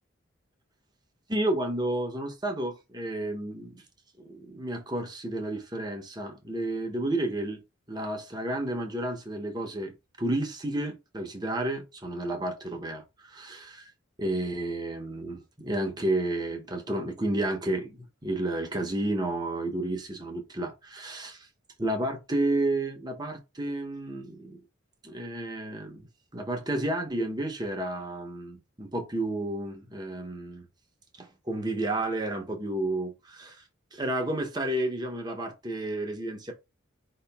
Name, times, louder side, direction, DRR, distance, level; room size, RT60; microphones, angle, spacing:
voice 1, 1.3-3.8 4.2-7.6 7.9-13.9 14.2-21.5 21.8-24.6 25.0-26.1 26.3-30.7 31.2-33.6 33.9-36.5, right 1 dB, 20° right, 0.9 m, -31 dB
4.9 x 2.9 x 3.4 m
head